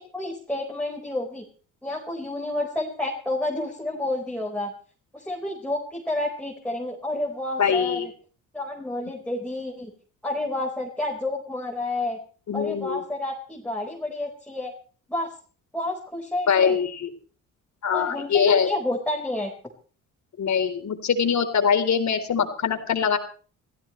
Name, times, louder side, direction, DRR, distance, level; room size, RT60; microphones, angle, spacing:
voice 1, 0.1-1.4 1.8-4.7 5.1-8.1 8.5-9.9 10.2-12.2 12.5-14.7 15.1-15.3 15.7-16.8 17.9-19.5, left 2 dB, 5° left, -2 dB, 4.7 m, -30 dB
voice 2, 7.6-8.1 12.5-13.0 16.5-17.1 17.8-18.7 20.4-23.2, left 7 dB, 55° left, 7 dB, 3.9 m, -22 dB
26.5 x 16.0 x 3.3 m, 0.42 s
cardioid pair, 80°, 33 cm